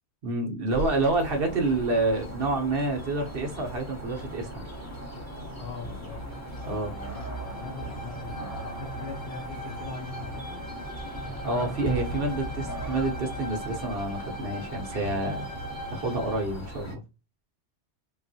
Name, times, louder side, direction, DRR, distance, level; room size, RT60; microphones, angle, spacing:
voice 1, 0.2-4.6 6.6-6.9 11.4-15.4 15.9-17.0, right 2 dB, 55° right, 0.9 m, -28 dB
sound 1, 0.7-16.9, right 1 dB, 15° left, 0.8 m, -38 dB
voice 2, 5.6-6.3 6.6-10.7, left 4 dB, 65° left, 0.8 m, -42 dB
Bowed string instrument, 6.1-16.6, equal, 20° right, 0.7 m, -42 dB
3.7 x 2.3 x 2.6 m
omnidirectional pair, 1.2 m